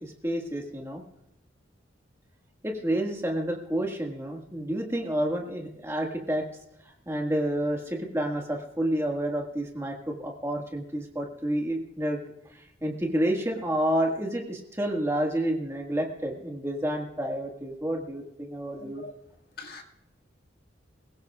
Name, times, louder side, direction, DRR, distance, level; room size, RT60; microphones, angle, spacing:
voice 1, 0.0-1.0 2.6-6.5 7.1-12.2 12.8-19.0, right 1 dB, 15° right, 1 dB, 1.7 m, -29 dB
voice 2, 18.8-19.1 19.6-19.8, left 3 dB, 55° left, 2 dB, 1.8 m, -42 dB
24.0 x 16.0 x 2.4 m, 0.83 s
head